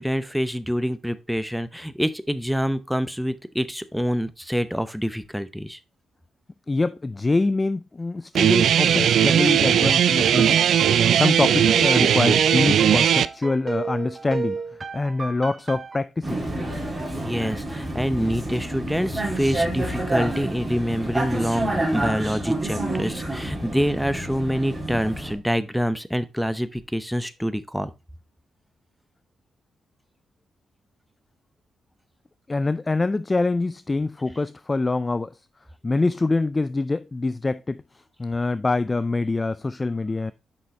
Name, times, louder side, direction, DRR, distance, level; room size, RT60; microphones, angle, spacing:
voice 1, 0.0-5.8 17.2-27.9, equal, ahead, 0.7 m, -26 dB
voice 2, 6.7-10.7 11.1-14.6 14.9-16.4 32.5-35.3 35.8-37.8 38.2-40.3, left 3 dB, 25° left, 0.3 m, -25 dB
Guitar, 8.3-13.3, right 9 dB, 75° right, 0.3 m, -18 dB
sound 1, 10.2-16.0, right 5 dB, 40° right, 0.7 m, -32 dB
Vehicle, 16.2-25.3, right 1 dB, 15° right, 2.6 m, -28 dB
6.9 x 5.6 x 3.2 m
cardioid pair, 70°, 0 cm